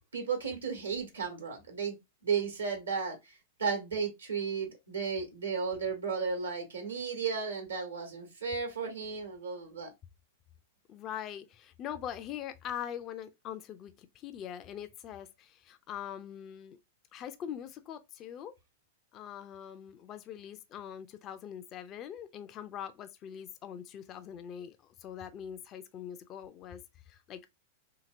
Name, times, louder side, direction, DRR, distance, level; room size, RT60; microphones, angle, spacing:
voice 1, 0.1-2.0 2.2-3.3 3.6-9.9, right 5 dB, 90° right, 1.1 m, -34 dB
voice 2, 10.9-16.8 17.1-18.5 19.1-26.8 27.1-27.4, left 9 dB, 35° left, 0.4 m, -42 dB
2.9 x 2.8 x 2.5 m
hypercardioid pair, 105°, 0 cm